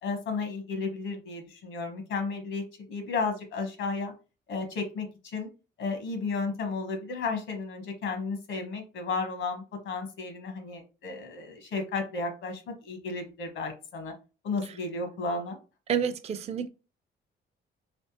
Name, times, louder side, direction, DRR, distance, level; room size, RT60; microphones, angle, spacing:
voice 1, 0.0-4.1 4.5-5.5 5.8-14.1 14.4-15.6, left 4 dB, 75° left, 1.1 m, -33 dB
voice 2, 15.9-16.7, right 7 dB, 30° right, 0.4 m, -29 dB
3.3 x 3.2 x 2.9 m
cardioid pair, 90°, 20 cm